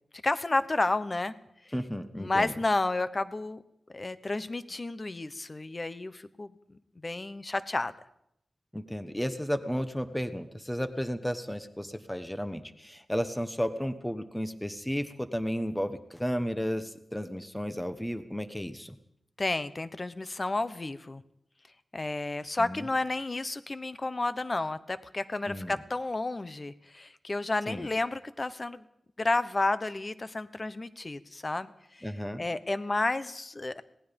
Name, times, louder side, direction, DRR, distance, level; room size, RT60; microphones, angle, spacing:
voice 1, 0.2-1.3 2.2-3.6 3.9-7.9 19.4-21.2 21.9-28.8 29.2-32.1 32.4-33.8, left 2 dB, 30° left, 13 dB, 1.0 m, -31 dB
voice 2, 1.7-2.5 8.7-19.0 22.6-22.9 25.5-25.8 27.7-27.9 32.0-32.5, equal, 5° left, 10 dB, 1.2 m, -33 dB
26.0 x 18.5 x 5.3 m, 0.77 s
wide cardioid pair, 120°, 0 cm